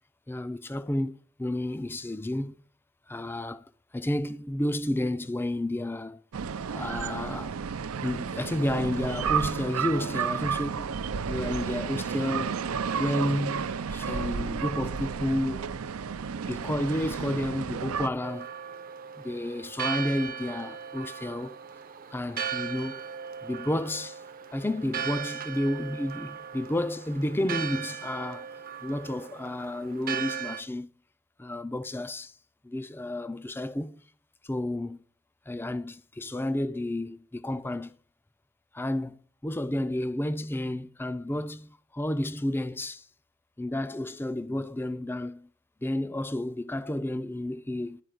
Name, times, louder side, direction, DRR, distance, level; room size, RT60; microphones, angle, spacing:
voice 1, 0.3-2.5 3.1-6.2 6.7-7.6 8.0-10.9 11.3-12.6 13.0-15.7 16.5-18.5 19.2-21.6 22.1-23.0 23.4-24.2 24.5-28.5 28.8-30.9 31.4-32.3 32.6-34.0 34.4-35.0 35.5-38.0 38.7-43.1 43.6-45.5 45.8-48.0, left 1 dB, 10° left, 0.4 m, -31 dB
sound 1, 6.3-18.1, right 6 dB, 85° right, 0.5 m, -32 dB
Church bell, 18.2-30.6, right 7 dB, 40° right, 0.7 m, -37 dB
11.5 x 4.6 x 7.8 m
head